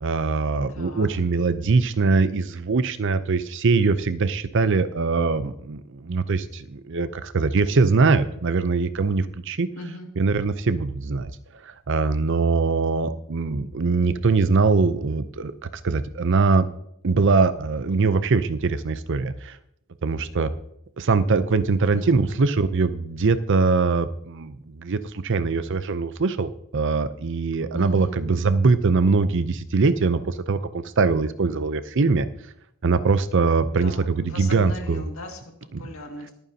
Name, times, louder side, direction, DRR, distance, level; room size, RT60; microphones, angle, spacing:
voice 1, 0.0-9.7 10.2-11.3 11.6-15.5 15.8-16.7 17.0-19.6 20.0-20.5 21.0-32.3 32.8-35.0 35.7-35.8, right 4 dB, 60° right, 13 dB, 0.6 m, -22 dB
voice 2, 0.7-1.1 9.8-10.1 21.9-22.1 27.7-28.2 33.8-35.4 35.8-36.3, left 1 dB, 70° left, 2 dB, 2.1 m, -38 dB
22.0 x 9.2 x 2.8 m, 0.76 s
head